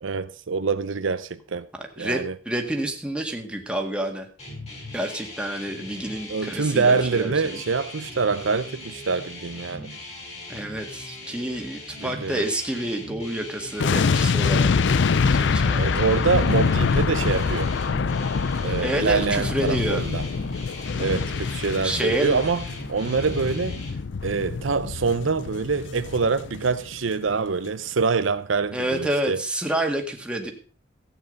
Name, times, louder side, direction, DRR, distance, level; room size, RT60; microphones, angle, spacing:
voice 1, 0.0-1.7 2.0-2.4 6.3-9.9 12.0-12.5 15.8-17.7 18.6-20.3 21.0-22.6 22.9-23.8 24.2-29.4, right 4 dB, 75° right, 0.7 m, -25 dB
voice 2, 2.0-4.3 4.9-7.6 10.5-14.7 15.2-16.0 18.8-20.0 21.8-22.4 28.7-30.5, right 1 dB, 5° right, 1.9 m, -28 dB
sound 1, 4.4-23.9, left 1 dB, 35° left, 5.5 m, -39 dB
sound 2, 13.8-26.9 27.2-27.4, left 5 dB, 65° left, 0.5 m, -25 dB
14.5 x 9.0 x 5.3 m
head